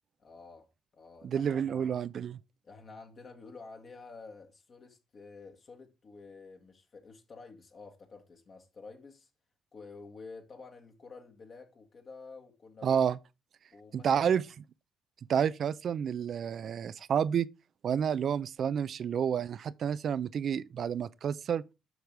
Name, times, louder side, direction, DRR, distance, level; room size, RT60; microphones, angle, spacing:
voice 1, 0.2-0.7 0.9-1.9 2.6-9.3 9.7-12.9 13.7-14.4, left 4 dB, 50° left, 1.6 m, -50 dB
voice 2, 1.2-2.4 12.8-13.2 13.9-14.4 15.3-17.5 17.8-21.6, right 8 dB, 60° right, 0.4 m, -29 dB
8.0 x 5.3 x 4.6 m
cardioid pair, 90°, 0 cm